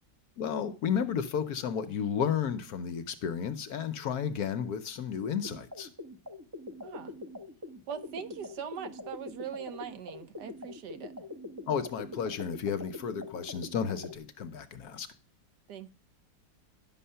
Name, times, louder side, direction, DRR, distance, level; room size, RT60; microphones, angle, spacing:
voice 1, 0.4-5.9 11.7-15.1, left 7 dB, 65° left, 1.1 m, -32 dB
sound 1, 5.4-14.2, left 2 dB, 15° right, 0.7 m, -44 dB
voice 2, 6.8-7.1 7.9-11.1 15.7-15.9, right 8 dB, 70° right, 1.4 m, -41 dB
11.0 x 6.3 x 5.6 m
omnidirectional pair, 2.0 m